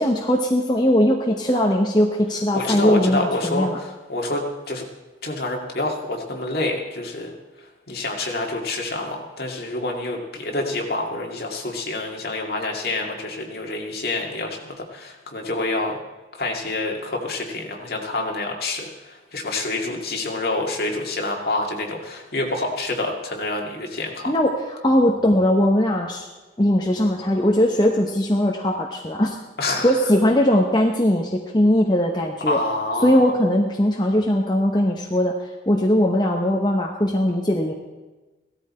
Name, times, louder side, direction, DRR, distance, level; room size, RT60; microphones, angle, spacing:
voice 1, 0.0-3.8 24.3-26.2 26.6-29.4 29.8-32.6 33.0-35.3 35.7-37.7, left 1 dB, 25° left, 0 dB, 0.9 m, -20 dB
voice 2, 2.5-3.7 4.1-4.8 5.2-7.3 7.9-16.0 16.3-24.3 29.6-29.9 32.5-33.2, left 2 dB, 55° left, 0 dB, 2.1 m, -27 dB
16.5 x 13.0 x 4.3 m, 1.2 s
head